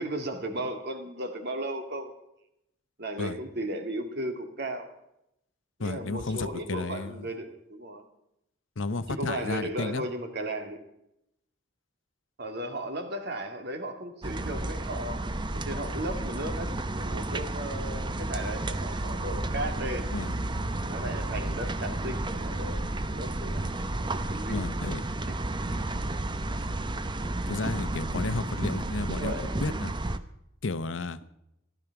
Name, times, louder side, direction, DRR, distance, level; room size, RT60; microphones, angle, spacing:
voice 1, 0.0-2.1 3.0-4.9 5.8-8.0 9.1-10.8 12.4-15.3 15.5-20.1 20.8-23.7 24.0-24.6 25.3-25.4 25.8-25.9 29.2-29.8, right 1 dB, 55° right, 5 dB, 2.3 m, -35 dB
voice 2, 5.8-7.3 8.8-10.0 20.1-20.3 24.5-25.0 27.5-29.3 29.6-29.9 30.6-31.2, left 3 dB, 70° left, 13 dB, 0.8 m, -32 dB
sound 1, 14.2-30.2, right 2 dB, 25° right, 0.8 m, -32 dB
15.5 x 12.5 x 5.9 m, 0.81 s
head